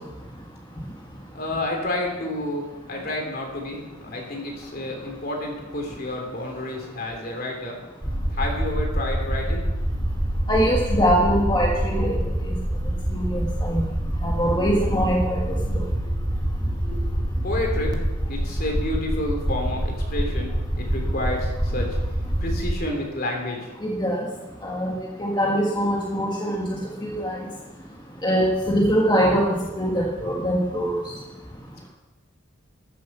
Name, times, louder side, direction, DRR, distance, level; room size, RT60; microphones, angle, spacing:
voice 1, 1.3-7.8 8.3-9.6 16.1-16.3 16.8-17.1 17.4-17.9 18.3-21.9 22.4-23.6, left 1 dB, 45° left, 1 dB, 3.2 m, -30 dB
sound 1, 8.0-22.7, equal, 20° right, 1.2 m, -26 dB
voice 2, 10.5-12.5 13.1-13.9 14.2-15.8 23.8-24.2 24.6-26.6 27.0-27.4 28.2-29.4 29.8-31.1, equal, 20° left, -3 dB, 1.6 m, -23 dB
14.5 x 7.7 x 7.1 m, 1.2 s
head